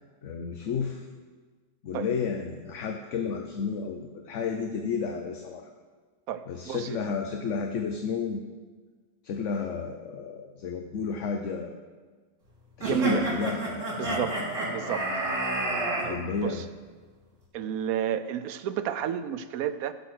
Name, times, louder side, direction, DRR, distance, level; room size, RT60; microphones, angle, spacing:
voice 1, 0.2-1.0 1.8-5.7 6.5-8.4 9.2-11.7 12.8-14.2 16.0-16.6, left 5 dB, 65° left, 4 dB, 1.1 m, -32 dB
voice 2, 6.3-7.0 12.8-13.2 14.0-14.4 14.7-15.1 16.0-16.7 17.5-19.9, right 9 dB, 85° right, 12 dB, 1.1 m, -31 dB
sound 1, 12.8-16.0, right 1 dB, 65° right, 3.8 m, -29 dB
15.5 x 5.8 x 6.0 m, 1.4 s
omnidirectional pair, 1.5 m